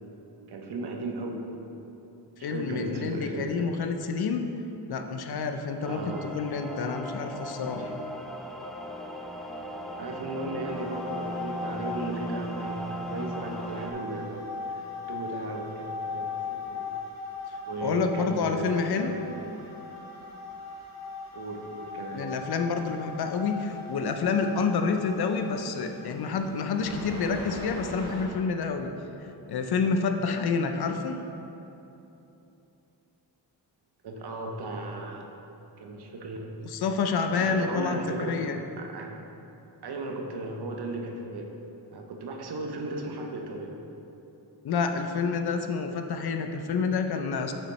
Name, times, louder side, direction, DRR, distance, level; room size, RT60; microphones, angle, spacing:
voice 1, 0.5-1.4 2.4-3.9 5.9-6.3 10.0-16.9 17.6-19.2 21.3-22.3 34.0-35.3 35.8-36.7 37.4-38.4 38.8-39.1 39.8-41.5 41.9-43.7, right 2 dB, 65° right, 2 dB, 0.8 m, -36 dB
voice 2, 2.4-4.4 4.9-7.9 17.8-19.1 22.1-28.9 29.2-31.2 36.6-38.6 44.6-47.5, left 5 dB, 60° left, 6 dB, 0.5 m, -28 dB
sound 1, 5.8-13.9, equal, ahead, 0.3 m, -37 dB
sound 2, 10.7-28.2, left 3 dB, 40° left, 1.2 m, -39 dB
6.4 x 5.7 x 3.1 m, 3.0 s
wide cardioid pair, 120°, 43 cm